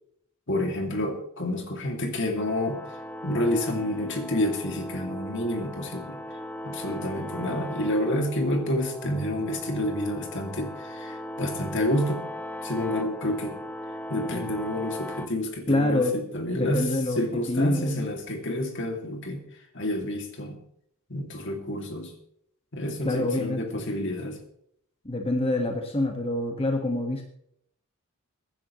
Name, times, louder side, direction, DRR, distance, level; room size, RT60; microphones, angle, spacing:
voice 1, 0.5-2.8 3.2-6.2 6.6-12.3 12.6-13.6 14.1-19.4 19.7-20.6 21.1-22.1 22.7-24.4, left 1 dB, 55° left, 4 dB, 2.5 m, -29 dB
sound 1, 2.4-15.3, left 1 dB, 5° left, 0.8 m, -38 dB
voice 2, 15.7-16.1 16.5-17.2 17.5-18.1 23.0-23.6 25.0-27.2, left 2 dB, 25° left, 2 dB, 1.6 m, -26 dB
23.0 x 10.5 x 3.1 m, 0.69 s
head